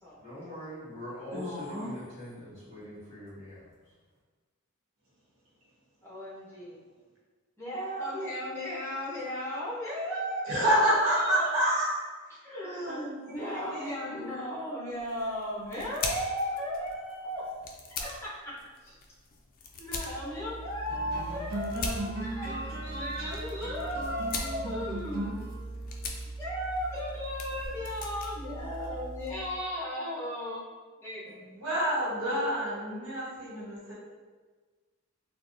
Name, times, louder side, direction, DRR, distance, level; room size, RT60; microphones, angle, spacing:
voice 1, 0.2-3.7, left 1 dB, 30° right, -13 dB, 1.4 m, -43 dB
voice 2, 1.3-1.9 10.5-12.0 12.8-13.0 13.7-13.9 31.5-33.9, right 1 dB, 80° right, -8 dB, 1.0 m, -28 dB
voice 3, 6.0-6.8 7.6-11.6 12.4-17.5 18.0-18.6 18.8-19.0 19.8-25.4 26.4-30.6 31.0-31.4, equal, 10° left, -7 dB, 0.7 m, -36 dB
sound 1, 14.9-29.5, left 3 dB, 40° left, 0.3 m, -42 dB
sound 2, 19.9-29.5, right 2 dB, 45° right, 0.8 m, -38 dB
3.9 x 2.2 x 2.5 m, 1.4 s
head